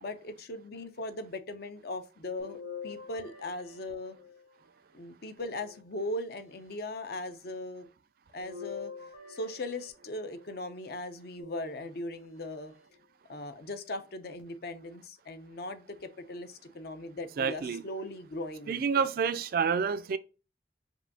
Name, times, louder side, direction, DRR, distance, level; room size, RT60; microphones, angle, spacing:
voice 1, 0.0-4.2 4.9-7.9 8.3-8.9 9.3-12.7 13.3-19.0, left 1 dB, 55° left, 0.6 m, -39 dB
sound 1, 2.4-4.7 5.4-6.4 8.4-10.5 11.4-12.3 12.9-13.0 14.4-14.5, left 6 dB, 90° left, 1.5 m, -46 dB
voice 2, 17.4-17.8 18.7-20.2, right 6 dB, 50° right, 0.3 m, -28 dB
5.4 x 2.7 x 2.6 m
head